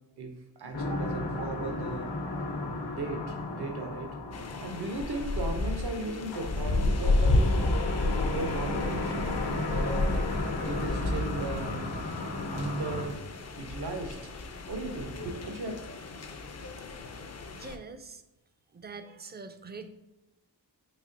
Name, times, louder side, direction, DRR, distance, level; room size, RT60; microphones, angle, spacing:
voice 1, 0.2-2.2 2.9-4.2 4.6-7.6 8.0-9.4 9.7-10.3 10.6-11.9 12.5-13.3 13.6-14.3 14.7-15.8, right 2 dB, 65° right, 4 dB, 0.7 m, -36 dB
sound 1, 0.7-13.1, left 2 dB, 75° left, 0.8 m, -34 dB
sound 2, 4.3-17.8, left 2 dB, 40° left, 0.4 m, -31 dB
voice 2, 17.5-18.2 18.7-19.9, right 4 dB, 25° right, 9 dB, 0.3 m, -44 dB
4.1 x 2.7 x 2.5 m, 0.99 s
cardioid pair, 40°, 42 cm